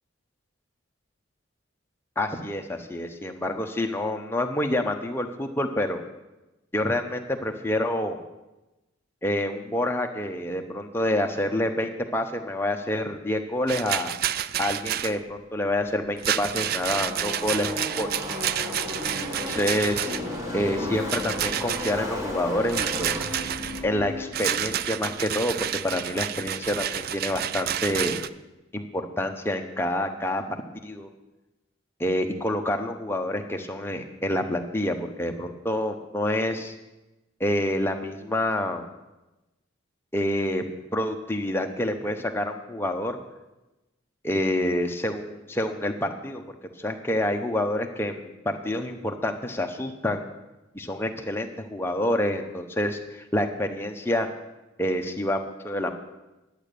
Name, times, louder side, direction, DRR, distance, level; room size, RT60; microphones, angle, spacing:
voice 1, 2.2-6.0 6.7-8.2 9.2-14.1 14.6-18.1 19.5-20.2 20.5-23.2 23.8-28.2 28.7-30.4 30.8-31.1 32.0-36.7 37.4-38.8 40.1-40.7 40.9-43.2 44.2-46.4 46.8-50.3 50.7-54.3 54.8-55.9, left 1 dB, 10° left, 4 dB, 0.8 m, -27 dB
Rattle, 13.7-15.2 16.2-20.4 21.1-22.0 22.7-23.8 24.3-28.3, right 10 dB, 45° right, 0.3 m, -29 dB
Car passing by / Race car auto racing, 16.0-26.2, left 1 dB, 15° right, 1.8 m, -35 dB
10.5 x 9.1 x 6.7 m, 1.0 s
head